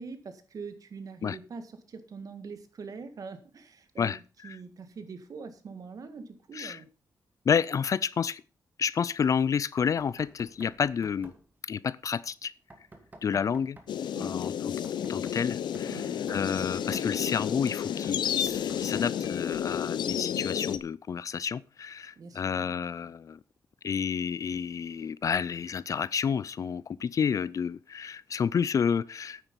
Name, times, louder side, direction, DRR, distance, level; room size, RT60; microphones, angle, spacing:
voice 1, 0.0-6.9 13.5-13.6 14.1-14.5 15.8-16.2 22.2-23.0, right 5 dB, 50° right, 1.8 m, -44 dB
voice 2, 7.5-8.4 8.8-11.3 11.7-12.5 13.2-13.8 14.2-14.7 15.1-16.0 16.3-23.4 23.8-29.4, left 7 dB, 45° left, 0.4 m, -30 dB
Knock, 9.8-11.5 12.7-14.0 14.6-17.5 18.0-19.8, right 2 dB, 25° right, 1.9 m, -51 dB
sound 1, 13.9-20.8, left 9 dB, 85° left, 0.8 m, -31 dB
9.4 x 9.0 x 5.3 m
wide cardioid pair, 140°, 7 cm